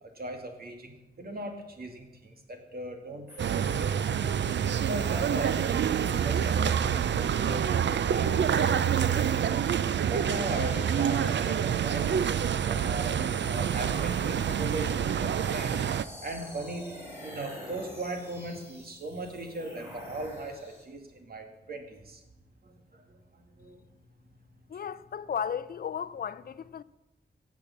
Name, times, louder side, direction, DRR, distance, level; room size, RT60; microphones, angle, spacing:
voice 1, 0.0-4.5 4.9-9.7 10.1-15.9 16.2-22.2 22.6-23.8, right 1 dB, 60° right, 2.4 m, -39 dB
sound 1, 3.3-20.8, equal, 15° right, 5.4 m, -48 dB
sound 2, 3.4-16.0, right 8 dB, 85° right, 0.5 m, -27 dB
voice 2, 24.7-26.8, left 7 dB, 55° left, 0.5 m, -34 dB
18.0 x 7.2 x 7.2 m
wide cardioid pair, 125°, 18 cm